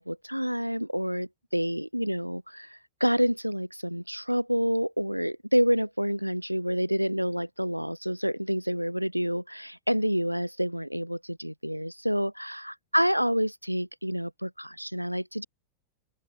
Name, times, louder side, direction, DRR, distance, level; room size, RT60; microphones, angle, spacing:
voice 1, 0.0-15.5, equal, 90° right, 0.5 m, -28 dB
open air
figure-of-eight pair, 90°, 0 cm